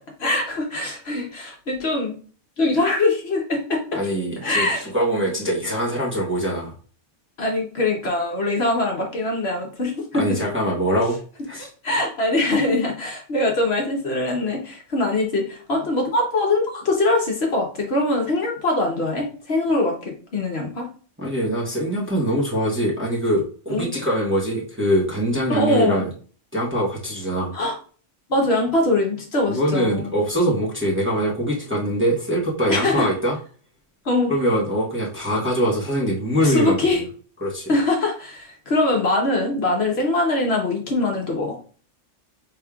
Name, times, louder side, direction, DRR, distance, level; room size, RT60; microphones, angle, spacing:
voice 1, 0.2-2.2 2.6-4.0 4.4-4.9 7.4-10.4 11.8-20.9 23.7-23.9 25.5-26.0 27.5-27.7 28.3-30.1 32.7-33.1 34.0-34.3 36.4-37.0 37.7-41.6, left 2 dB, 60° left, 0 dB, 1.2 m, -22 dB
voice 2, 3.9-6.7 10.1-11.2 11.5-11.7 21.2-26.1 26.5-27.5 29.5-33.4 34.3-37.0 37.4-37.7, equal, 10° right, -5 dB, 1.1 m, -23 dB
5.3 x 3.5 x 2.3 m, 0.41 s
omnidirectional pair, 1.3 m